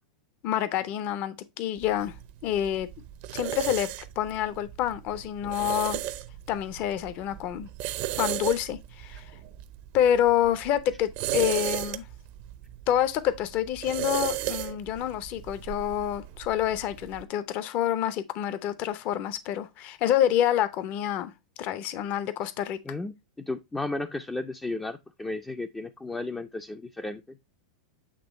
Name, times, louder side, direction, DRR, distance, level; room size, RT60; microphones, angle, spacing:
voice 1, 0.4-2.1 2.4-2.9 3.3-3.9 4.2-6.0 6.5-7.7 8.2-9.2 9.9-12.1 12.9-21.3 21.6-22.8, left 11 dB, 45° left, 0.7 m, -27 dB
sound 1, 1.8-17.2, right 14 dB, 50° right, 0.6 m, -36 dB
voice 2, 23.5-27.2, left 2 dB, 10° left, 0.5 m, -34 dB
8.5 x 3.0 x 4.1 m
hypercardioid pair, 115°, 4 cm